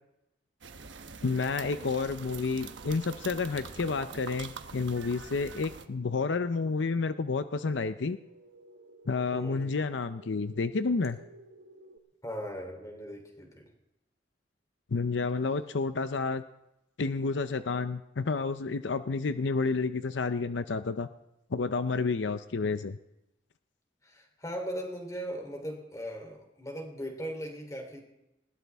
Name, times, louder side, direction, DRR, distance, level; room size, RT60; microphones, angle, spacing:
sound 1, 0.6-5.9, right 5 dB, 85° right, 1.1 m, -45 dB
voice 1, 1.2-8.2 9.1-11.2 14.9-16.4 17.0-21.1 21.5-23.0, left 4 dB, 80° left, 11 dB, 0.6 m, -30 dB
sound 2, 7.0-12.0, right 3 dB, 55° right, 1.1 m, -54 dB
voice 2, 9.3-9.8 12.2-13.6 24.0-28.0, equal, 20° left, 2 dB, 3.3 m, -38 dB
20.5 x 18.0 x 3.5 m, 0.89 s
head